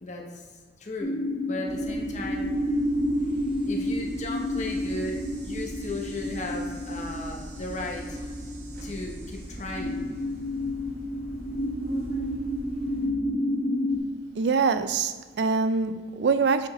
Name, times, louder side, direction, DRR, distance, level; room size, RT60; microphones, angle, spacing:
voice 1, 0.0-1.2 1.4-2.5 3.0-3.1 3.7-8.2 8.8-10.0, left 2 dB, 40° left, 0.8 m, -36 dB
sound 1, 1.0-14.0, equal, 15° left, 1.3 m, -30 dB
sound 2, 1.7-13.1, equal, 60° right, 1.4 m, -42 dB
voice 2, 14.4-16.7, right 5 dB, 75° right, 0.4 m, -24 dB
7.3 x 4.9 x 3.1 m
head